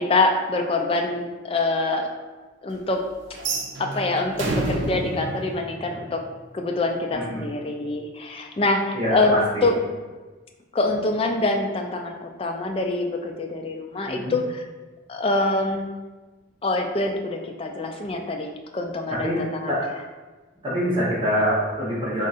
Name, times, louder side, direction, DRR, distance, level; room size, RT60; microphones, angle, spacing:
voice 1, 0.0-2.1 2.6-3.0 3.8-6.2 6.5-9.7 10.7-14.6 15.1-15.9 16.6-19.7, left 2 dB, 30° left, 3 dB, 0.3 m, -25 dB
sound 1, 3.3-6.4, right 2 dB, 65° right, 0.5 m, -29 dB
voice 2, 7.1-7.5 8.9-9.7 14.1-14.3 19.1-19.4 19.7-19.8 20.6-22.3, equal, 25° right, -8 dB, 0.8 m, -25 dB
3.7 x 2.4 x 4.0 m, 1.3 s
head